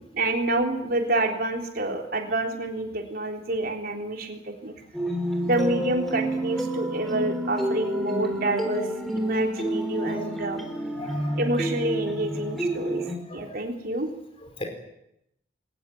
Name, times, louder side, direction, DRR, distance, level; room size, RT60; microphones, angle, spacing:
voice 1, 0.0-4.7 5.4-8.9 9.1-10.6 11.4-13.1 13.3-14.1, right 2 dB, 55° right, 2 dB, 3.7 m, -28 dB
sound 1, 4.9-13.2, equal, ahead, 4.1 m, -29 dB
voice 2, 10.9-11.4 13.3-13.6 14.6-14.7, left 1 dB, 30° left, 4 dB, 4.6 m, -38 dB
22.5 x 19.0 x 9.3 m, 0.81 s
head